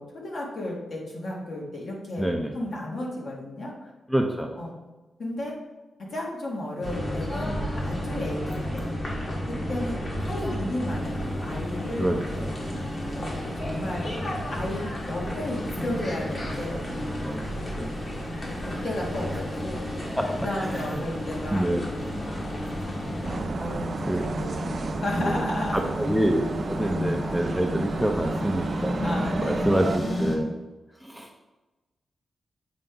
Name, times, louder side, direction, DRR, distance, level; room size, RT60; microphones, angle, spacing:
voice 1, 0.0-2.3 2.5-3.9 4.6-4.7 5.2-5.6 6.1-8.9 9.5-12.5 13.1-14.2 14.5-17.2 18.4-19.9 20.4-21.7 23.6-25.9 26.8-27.1 29.0-29.8, left 1 dB, 60° left, -3 dB, 1.9 m, -33 dB
voice 2, 2.2-2.6 4.1-4.6 12.0-12.2 17.2-17.5 17.8-17.9 20.2-21.0 21.5-22.1 24.1-24.3 24.9-25.4 25.7-26.4 26.7-30.5 31.0-31.3, right 1 dB, ahead, 3 dB, 0.6 m, -27 dB
sound 1, 6.8-23.4, equal, 40° left, 1.6 m, -32 dB
sound 2, 10.9-30.4, left 1 dB, 25° left, 1.5 m, -35 dB
sound 3, 23.2-30.0, right 4 dB, 50° right, 0.3 m, -33 dB
7.8 x 4.6 x 3.9 m, 1.1 s
cardioid pair, 100°, 0 cm